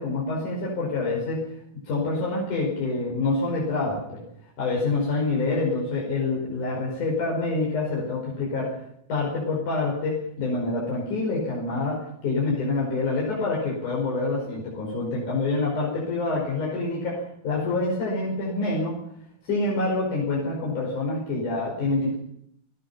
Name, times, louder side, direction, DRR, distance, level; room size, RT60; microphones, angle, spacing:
voice 1, 0.0-1.5 1.9-4.2 4.6-8.8 9.1-19.0 19.5-22.1, left 3 dB, 90° left, -4 dB, 6.9 m, -26 dB
27.5 x 18.5 x 5.8 m, 0.71 s
omnidirectional pair, 3.4 m